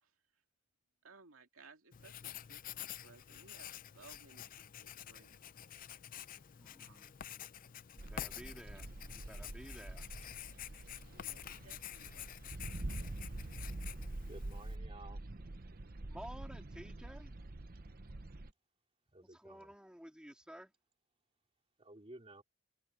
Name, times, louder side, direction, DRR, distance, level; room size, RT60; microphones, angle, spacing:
voice 1, 1.0-5.4 6.8-7.1 11.1-13.3, right 4 dB, 75° right, 2.4 m, -62 dB
Writing, 1.9-14.8, left 10 dB, 40° left, 0.5 m, -49 dB
voice 2, 6.5-7.1 7.9-10.1 16.1-17.3 19.2-20.7, equal, 5° right, 2.5 m, -53 dB
sound 1, 8.0-18.5, right 2 dB, 45° right, 0.9 m, -46 dB
voice 3, 14.3-15.2 19.1-19.7 21.8-22.4, right 2 dB, 30° right, 2.9 m, -54 dB
head